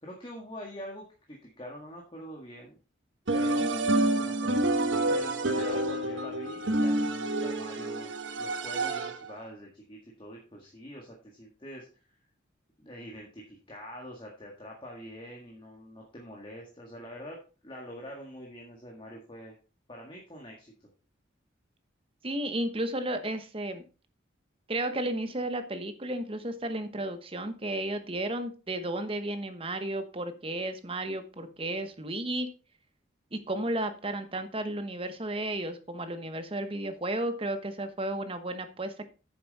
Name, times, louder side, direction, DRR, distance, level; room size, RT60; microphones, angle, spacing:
voice 1, 0.0-2.8 3.3-11.9 12.8-17.4 17.6-19.5 19.9-20.9, equal, 25° left, -1 dB, 1.7 m, -45 dB
sound 1, 3.3-9.3, right 2 dB, 80° right, 1.2 m, -28 dB
voice 2, 3.6-3.9 22.2-23.8 24.7-32.5 33.3-39.1, right 1 dB, 30° right, 10 dB, 1.0 m, -33 dB
9.4 x 7.0 x 4.1 m, 0.34 s
head